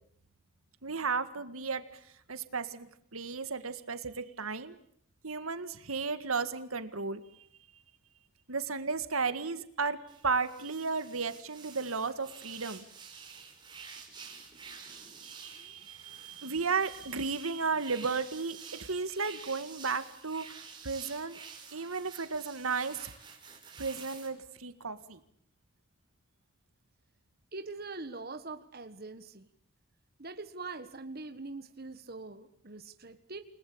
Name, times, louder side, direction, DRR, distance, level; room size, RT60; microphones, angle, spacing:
voice 1, 0.8-1.8 2.3-4.8 5.2-7.2 8.5-10.0 10.2-12.8 15.2-20.5 20.8-21.4 21.7-23.1 23.8-25.2, right 4 dB, 80° right, 10 dB, 1.9 m, -34 dB
sound 1, 10.1-24.3, right 6 dB, 20° right, 5.6 m, -50 dB
voice 2, 27.5-29.5 30.2-33.4, right 3 dB, 45° right, 8 dB, 1.6 m, -43 dB
29.5 x 19.5 x 8.7 m, 0.68 s
head